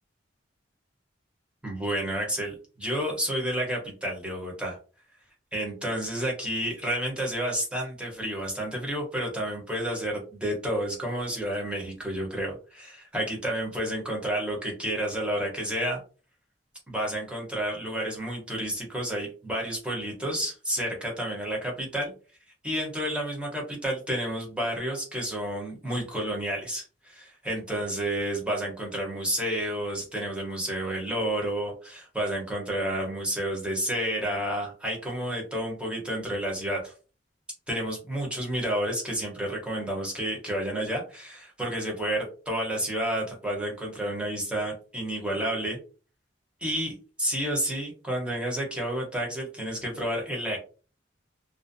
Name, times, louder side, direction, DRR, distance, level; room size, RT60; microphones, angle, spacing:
voice 1, 1.6-4.8 5.5-16.0 16.9-22.1 22.6-36.9 37.7-45.8 46.6-50.6, right 1 dB, 5° right, -2 dB, 0.7 m, -30 dB
2.4 x 2.0 x 2.5 m, 0.37 s
head